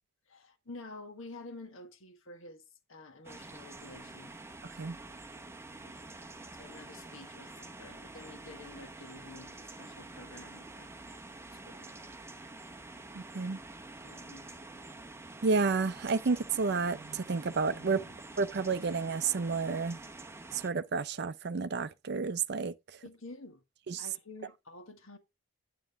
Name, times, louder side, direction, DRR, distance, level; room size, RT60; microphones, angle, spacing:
voice 1, 0.3-2.6 2.9-4.3 5.8-6.2 6.5-10.9 11.5-11.9 14.0-14.6 18.0-18.1 23.0-23.6 24.0-25.2, left 2 dB, 60° left, 1.6 m, -50 dB
sound 1, 3.2-20.7, right 2 dB, 10° right, 0.8 m, -48 dB
voice 2, 13.1-13.6 15.4-18.0 18.4-20.0 20.5-23.0 23.9-24.1, right 4 dB, 50° right, 0.5 m, -31 dB
9.2 x 7.6 x 3.5 m
head